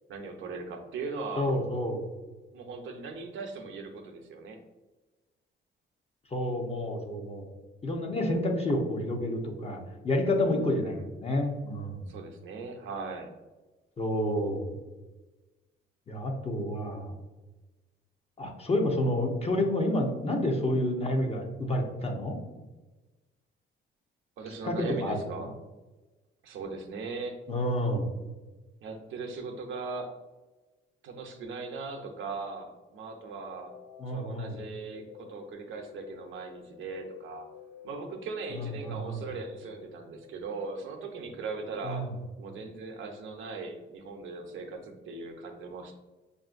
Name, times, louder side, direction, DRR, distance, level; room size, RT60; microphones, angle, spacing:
voice 1, 0.1-1.5 2.5-4.6 10.4-11.1 12.1-13.3 24.4-25.5 26.4-27.4 28.8-30.1 31.0-33.7 34.0-37.5 37.8-42.0 42.4-46.0, right 4 dB, 75° right, 4 dB, 0.6 m, -39 dB
voice 2, 1.4-2.0 6.3-7.5 7.8-12.1 14.0-14.8 16.1-17.1 18.4-22.4 24.6-25.2 27.5-28.1 34.0-34.6 38.6-39.2 41.8-42.1, left 1 dB, 30° left, 1 dB, 0.7 m, -29 dB
sound 1, 33.2-41.1, left 5 dB, 50° left, 1.0 m, -51 dB
5.4 x 2.6 x 2.5 m, 1.2 s
cardioid pair, 90°, 20 cm